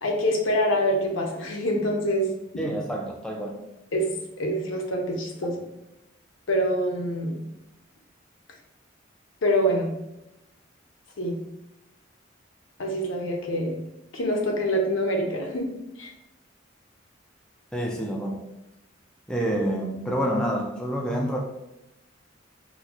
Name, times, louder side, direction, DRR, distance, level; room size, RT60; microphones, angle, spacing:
voice 1, 0.0-2.3 3.9-4.1 4.4-5.6 6.5-7.4 9.4-9.9 11.2-11.4 12.8-13.7 14.1-15.7 16.0-16.1, equal, 85° left, 1 dB, 0.7 m, -25 dB
voice 2, 2.6-3.6 17.7-18.4 19.3-21.4, equal, 5° left, -1 dB, 0.3 m, -28 dB
3.9 x 2.2 x 2.9 m, 0.90 s
head